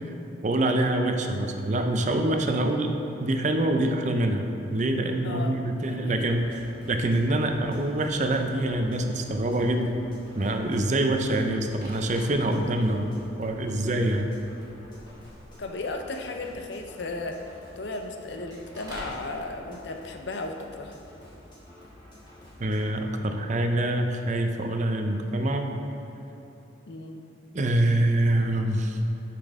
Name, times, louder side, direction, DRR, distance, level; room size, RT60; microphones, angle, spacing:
voice 1, 0.4-2.9 3.2-4.5 4.7-10.0 10.3-13.1 13.4-14.3 22.6-25.7 27.5-29.0, right 1 dB, 40° right, 5 dB, 0.5 m, -25 dB
voice 2, 5.2-5.6 5.9-6.2 15.6-17.4 17.8-20.9 26.9-27.3, left 2 dB, 60° left, 4 dB, 0.6 m, -35 dB
sound 1, 6.1-22.8, left 1 dB, 25° left, 1.6 m, -50 dB
sound 2, 11.8-12.6 13.1-13.2 14.1-14.4 14.7-17.0 18.5-19.2 22.9-23.2, right 1 dB, 20° right, 1.7 m, -46 dB
8.5 x 5.9 x 3.6 m, 3.0 s
head